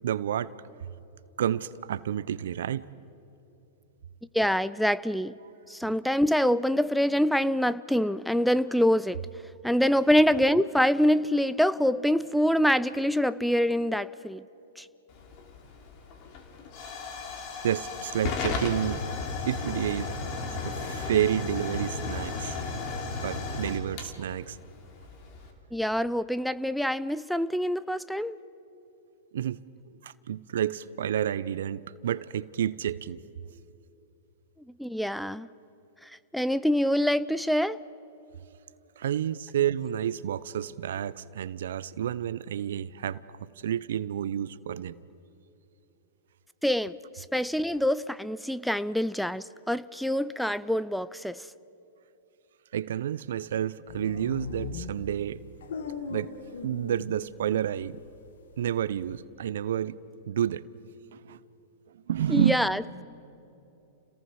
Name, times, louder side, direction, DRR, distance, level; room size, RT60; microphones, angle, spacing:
voice 1, 0.0-0.5 1.4-2.9 17.6-19.0 19.4-20.1 20.6-22.6 23.2-24.6 29.3-29.6 30.0-33.2 39.0-45.0 52.7-55.4 56.1-56.3 56.6-58.0 58.6-60.0 60.2-60.6 61.1-61.4 62.1-62.6, right 10 dB, 70° right, 19 dB, 0.6 m, -30 dB
voice 2, 4.3-5.3 5.7-9.2 9.6-14.4 14.8-14.9 25.7-28.4 34.8-35.5 36.3-37.8 46.6-51.5 62.3-63.0, equal, ahead, 17 dB, 0.4 m, -25 dB
Hiss / Fire / Tick, 15.1-25.5, left 4 dB, 45° left, 3.2 m, -35 dB
sound 1, 53.9-57.7 58.0-59.2, left 5 dB, 75° left, 1.7 m, -39 dB
30.0 x 18.5 x 4.8 m, 3.0 s
hypercardioid pair, 110°, 0 cm